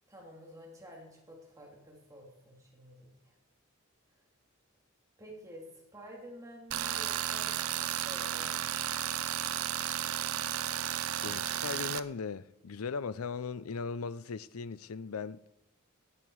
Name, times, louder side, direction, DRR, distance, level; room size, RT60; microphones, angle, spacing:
voice 1, 0.1-3.3 5.2-8.7, equal, 15° right, 2.9 m, -50 dB
Tools, 6.7-12.0, right 11 dB, 80° right, 0.6 m, -33 dB
voice 2, 11.2-15.5, left 5 dB, 85° left, 0.5 m, -38 dB
17.5 x 10.5 x 4.7 m
head